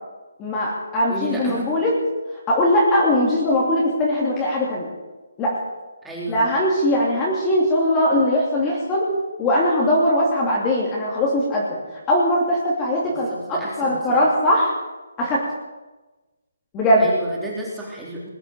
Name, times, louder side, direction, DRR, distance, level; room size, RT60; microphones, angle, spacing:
voice 1, 0.4-1.9 2.5-4.9 5.4-5.6 6.3-9.1 9.4-11.8 12.1-14.8 15.2-15.4 16.7-17.1, left 1 dB, 15° left, -4 dB, 2.9 m, -20 dB
voice 2, 1.1-1.7 6.0-6.5 13.1-14.2 17.0-18.3, right 2 dB, 5° right, -5 dB, 3.6 m, -32 dB
20.5 x 8.9 x 7.6 m, 1.1 s
hypercardioid pair, 165°, 0 cm